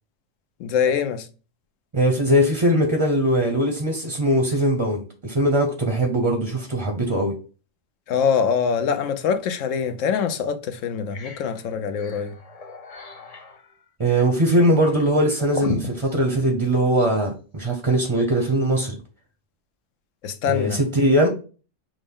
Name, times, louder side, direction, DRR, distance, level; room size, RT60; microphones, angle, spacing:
voice 1, 0.6-1.3 8.1-12.4 20.2-20.8, left 7 dB, 80° left, 1.0 m, -24 dB
voice 2, 1.9-7.3 14.0-19.0 20.5-21.3, right 1 dB, 30° right, 0.6 m, -21 dB
sound 1, 9.8-10.0 10.5-10.6 10.9-17.2, left 4 dB, 40° left, 0.6 m, -37 dB
6.0 x 2.1 x 3.5 m
omnidirectional pair, 1.3 m